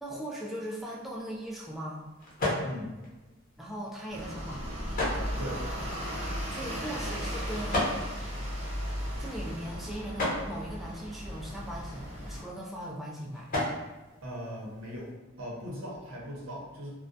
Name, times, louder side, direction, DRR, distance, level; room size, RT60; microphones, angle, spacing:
voice 1, 0.0-2.0 3.6-4.6 6.5-8.0 9.2-13.5, right 1 dB, ahead, -5 dB, 0.3 m, -39 dB
sound 1, 0.8-15.1, left 1 dB, 45° left, 0.7 m, -38 dB
sound 2, 4.1-12.4, equal, 30° right, 0.8 m, -36 dB
voice 2, 14.2-15.1 15.4-16.9, equal, 90° right, -3 dB, 0.7 m, -39 dB
2.3 x 2.1 x 2.6 m, 1.2 s
head